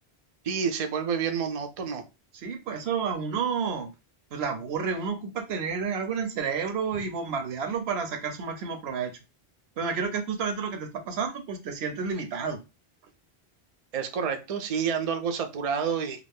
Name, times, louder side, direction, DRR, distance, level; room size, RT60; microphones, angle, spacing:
voice 1, 0.4-2.0 13.9-16.2, right 6 dB, 55° right, 0.4 m, -29 dB
voice 2, 2.3-3.9 4.3-9.1 9.8-12.6, right 5 dB, 80° right, 0.9 m, -30 dB
2.4 x 2.4 x 3.4 m
omnidirectional pair, 1.1 m